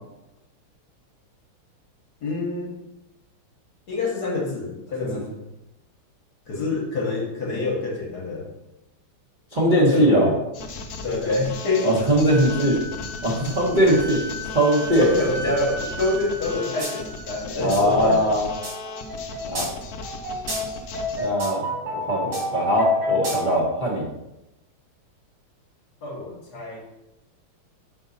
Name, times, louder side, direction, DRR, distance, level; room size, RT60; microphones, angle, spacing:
voice 1, 2.2-2.7 3.9-5.3 6.5-8.5 9.9-10.3 11.0-11.9 15.0-18.3 26.0-26.8, left 3 dB, 50° left, -1 dB, 1.5 m, -26 dB
voice 2, 9.5-10.3 11.8-12.8 13.2-15.1 17.6-18.4 19.5-19.7 21.2-21.7 21.9-24.1, right 1 dB, 30° right, -5 dB, 0.9 m, -20 dB
sound 1, 10.5-21.3, left 3 dB, 75° left, 0.8 m, -37 dB
Wind instrument woodwind instrument, 12.3-17.4, right 1 dB, 55° right, 2.0 m, -36 dB
sound 2, 16.8-16.9 17.2-23.7, left 1 dB, 70° right, 3.4 m, -28 dB
6.7 x 5.4 x 4.1 m, 0.93 s
omnidirectional pair, 2.4 m